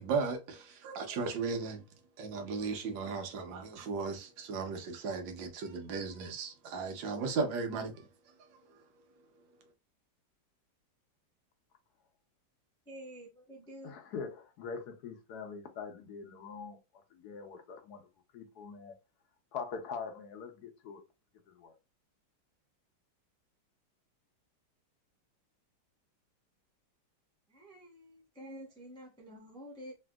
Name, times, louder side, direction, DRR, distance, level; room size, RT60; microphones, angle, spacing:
voice 1, 0.0-1.8 2.2-8.1, right 4 dB, 90° right, 1.5 m, -36 dB
voice 2, 12.9-13.9 27.5-29.9, equal, 5° left, 0.3 m, -49 dB
voice 3, 13.8-18.1 18.3-19.0 19.5-21.0 21.5-21.7, left 5 dB, 70° left, 1.0 m, -43 dB
3.3 x 2.7 x 2.2 m
omnidirectional pair, 2.0 m